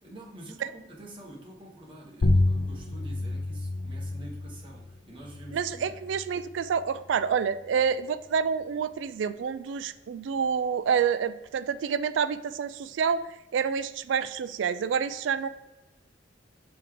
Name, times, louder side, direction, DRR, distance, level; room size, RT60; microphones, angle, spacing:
voice 1, 0.0-6.0, right 1 dB, 30° right, -3 dB, 1.6 m, -47 dB
sound 1, 2.2-7.3, left 2 dB, 65° left, 0.5 m, -30 dB
voice 2, 5.5-13.2 13.5-15.5, right 6 dB, 80° right, 13 dB, 0.3 m, -28 dB
5.9 x 4.7 x 3.8 m, 1.1 s
head